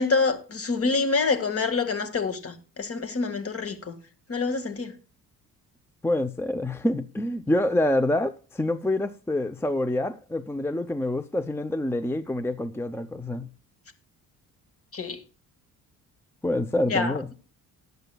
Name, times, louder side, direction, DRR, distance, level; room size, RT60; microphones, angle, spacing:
voice 1, 0.0-4.0 4.3-5.0 14.9-15.2 16.9-17.1, left 4 dB, 40° left, 1.9 m, -26 dB
voice 2, 6.0-13.5 16.4-17.3, left 1 dB, 5° left, 0.6 m, -26 dB
19.0 x 8.1 x 2.3 m
cardioid pair, 110°, 34 cm